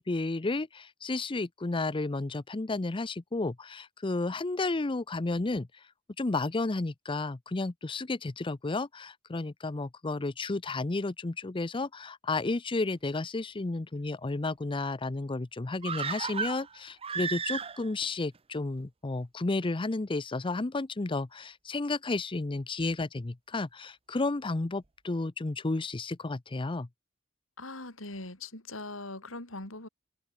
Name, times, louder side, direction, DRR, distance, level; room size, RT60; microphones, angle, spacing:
voice 1, 0.0-5.7 6.2-26.9, left 2 dB, 25° left, 0.6 m, -32 dB
sound 1, 15.8-18.1 18.3-18.4, right 6 dB, 30° right, 0.8 m, -34 dB
voice 2, 27.6-29.9, left 2 dB, 90° left, 6.7 m, -41 dB
head